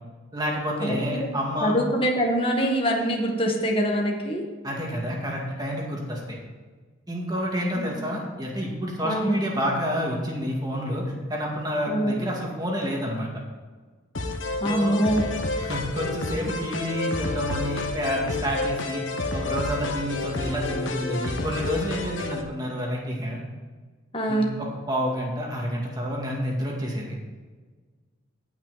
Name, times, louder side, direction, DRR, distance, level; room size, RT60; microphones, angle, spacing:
voice 1, 0.3-1.7 4.6-6.4 7.1-11.0 11.3-13.3 14.7-15.0 15.6-19.0 19.3-23.4 24.3-27.2, equal, 20° right, -2 dB, 2.1 m, -29 dB
voice 2, 0.9-1.3 1.6-4.4 7.7-7.9 9.0-9.4 11.9-12.2 14.6-15.2 24.1-24.5, equal, 25° left, 0 dB, 1.6 m, -24 dB
sound 1, 14.1-22.4, left 2 dB, 70° left, 1.2 m, -30 dB
16.5 x 6.0 x 4.2 m, 1.4 s
head